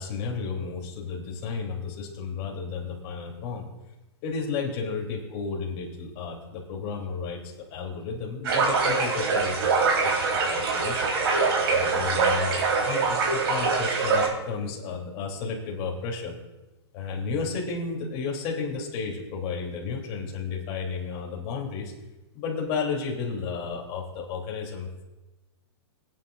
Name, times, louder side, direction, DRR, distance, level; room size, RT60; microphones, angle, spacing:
voice 1, 0.0-3.7 4.2-11.1 11.7-12.6 12.8-16.3 16.9-21.9 22.3-25.0, left 5 dB, 40° left, 0 dB, 3.1 m, -33 dB
sound 1, 8.4-14.3, right 4 dB, 65° right, 3.6 m, -24 dB
21.5 x 9.7 x 2.5 m, 1.1 s
hypercardioid pair, 125°, 14 cm